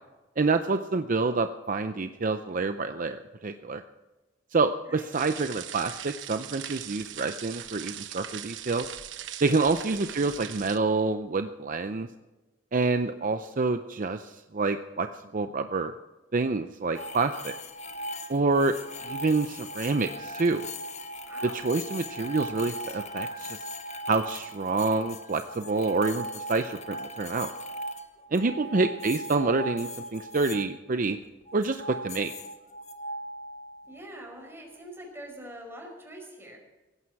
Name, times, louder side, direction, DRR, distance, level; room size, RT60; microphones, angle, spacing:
voice 1, 0.4-3.8 4.5-8.9 9.4-12.1 12.7-15.1 15.3-15.9 16.3-17.5 18.3-18.8 19.0-20.6 21.5-23.6 24.1-27.5 28.3-31.2 31.5-32.3, right 3 dB, 45° right, 8 dB, 0.6 m, -27 dB
sound 1, 5.1-10.8, right 11 dB, 80° right, 1.0 m, -40 dB
sound 2, 16.9-30.7 31.5-34.0, equal, 40° left, 1.3 m, -38 dB
voice 2, 21.2-21.6 28.4-28.9 33.9-36.6, right 1 dB, 15° right, 0 dB, 5.2 m, -44 dB
17.5 x 15.5 x 4.7 m, 1.1 s
head